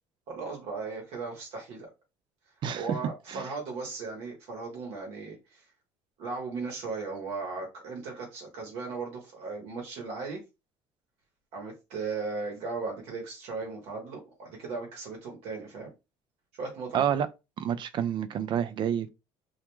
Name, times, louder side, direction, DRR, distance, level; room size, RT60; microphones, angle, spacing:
voice 1, 0.3-1.9 2.8-5.7 6.2-10.4 11.5-15.9 16.5-17.1, right 4 dB, 70° right, 1.0 m, -37 dB
voice 2, 16.9-17.3 17.6-19.1, right 9 dB, 50° right, 0.4 m, -28 dB
2.3 x 2.1 x 3.0 m
supercardioid pair, 100°, 11 cm